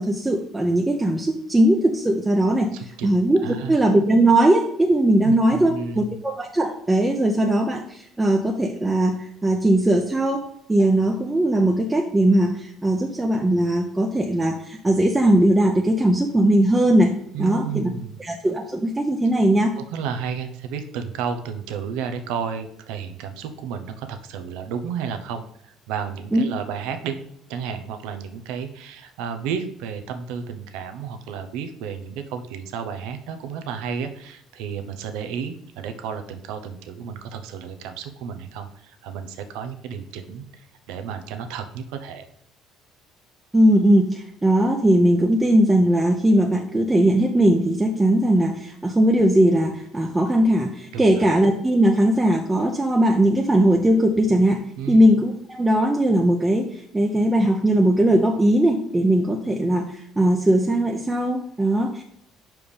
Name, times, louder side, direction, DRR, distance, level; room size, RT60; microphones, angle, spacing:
voice 1, 0.0-17.1 17.4-17.9 18.2-19.7 26.3-26.5 43.5-62.0, right 1 dB, 15° right, 1 dB, 0.7 m, -19 dB
voice 2, 2.7-3.1 3.4-3.8 5.2-6.0 17.3-18.2 19.8-27.2 27.5-42.3 50.9-51.0 54.8-55.0, right 7 dB, 85° right, 8 dB, 0.7 m, -32 dB
5.4 x 4.5 x 5.0 m, 0.72 s
supercardioid pair, 95°, 0 cm